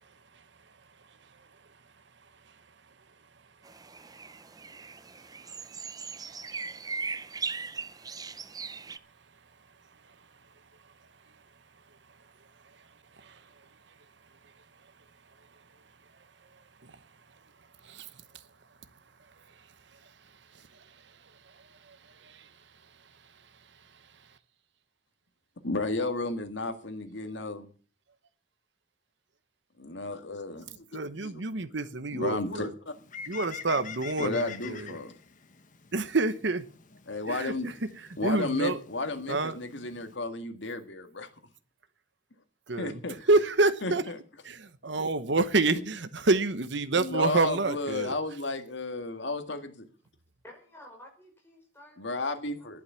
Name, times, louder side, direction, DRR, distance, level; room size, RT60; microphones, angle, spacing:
sound 1, 3.6-9.0, right 4 dB, 20° right, 0.6 m, -39 dB
voice 1, 25.6-27.7 29.8-30.8 31.2-31.4 31.8-32.9 34.2-35.1 37.1-37.7 38.2-41.3 42.8-43.3 43.8-44.2 46.9-49.9 52.0-52.8, left 2 dB, 65° left, 1.9 m, -33 dB
voice 2, 30.9-32.7 33.3-34.9 35.9-36.6 37.3-37.5 38.2-38.8 39.3-39.6 42.7-43.0 43.3-44.0 44.4-48.1, right 3 dB, 65° right, 1.0 m, -27 dB
Bird, 32.9-40.2, left 7 dB, 40° left, 1.3 m, -46 dB
voice 3, 50.4-52.8, left 1 dB, 10° left, 5.4 m, -53 dB
12.5 x 11.5 x 7.0 m
head